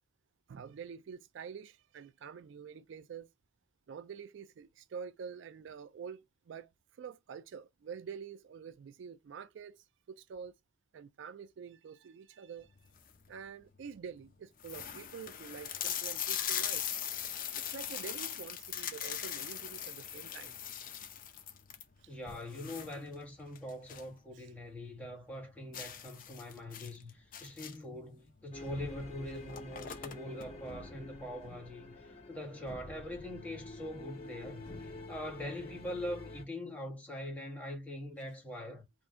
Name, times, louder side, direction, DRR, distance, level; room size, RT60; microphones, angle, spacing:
voice 1, 0.5-3.3 3.9-6.7 7.0-10.5 10.9-12.7 13.3-16.8 17.5-20.5 22.0-22.1 24.3-24.5, right 6 dB, 70° right, 0.4 m, -47 dB
sound 1, 12.8-13.3 13.9-14.0 14.2-14.3 14.6-24.2 24.5-24.6 25.0-25.1 25.7-28.0 28.9-29.0 29.3-30.5, left 9 dB, 45° left, 0.6 m, -40 dB
voice 2, 22.1-38.8, left 1 dB, 10° left, 1.4 m, -43 dB
sound 2, 28.5-36.5, left 2 dB, 30° left, 2.1 m, -48 dB
3.6 x 2.6 x 4.2 m
head